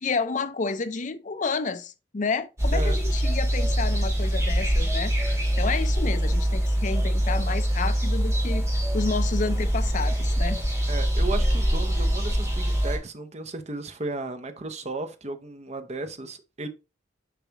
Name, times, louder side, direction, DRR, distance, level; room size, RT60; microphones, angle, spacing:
voice 1, 0.0-5.1 5.6-8.7 8.9-10.6, left 4 dB, 40° left, 0.6 m, -30 dB
sound 1, 2.6-13.0, equal, 15° right, 2.6 m, -24 dB
voice 2, 10.9-16.7, right 3 dB, 35° right, 0.8 m, -34 dB
6.9 x 4.9 x 2.9 m
head